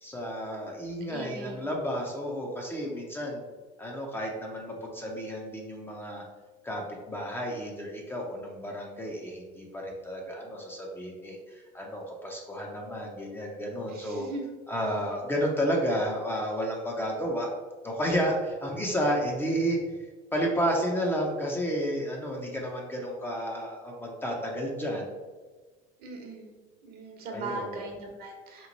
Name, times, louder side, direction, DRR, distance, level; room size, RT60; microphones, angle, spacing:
voice 1, 0.0-3.4 3.8-6.2 6.6-14.3 14.7-17.5 17.8-19.8 20.3-25.2 27.3-27.8, equal, 10° left, -1 dB, 0.6 m, -31 dB
voice 2, 1.1-1.6 13.9-14.4 26.0-26.5 26.8-28.7, right 2 dB, 55° right, 2 dB, 0.9 m, -39 dB
3.3 x 3.0 x 3.9 m, 1.3 s
cardioid pair, 130°, 19 cm